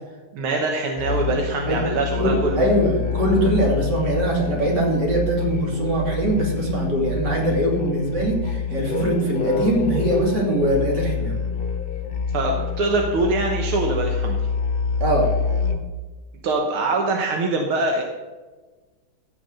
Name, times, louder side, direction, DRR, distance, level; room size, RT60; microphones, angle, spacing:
voice 1, 0.3-2.6 12.3-14.4 16.4-18.0, right 3 dB, 80° right, 2 dB, 2.0 m, -23 dB
Musical instrument, 1.0-16.0, left 4 dB, 40° left, 0.8 m, -26 dB
voice 2, 2.2-11.4 15.0-15.3, right 1 dB, 55° right, -1 dB, 3.4 m, -22 dB
15.0 x 6.0 x 6.6 m, 1.3 s
omnidirectional pair, 2.3 m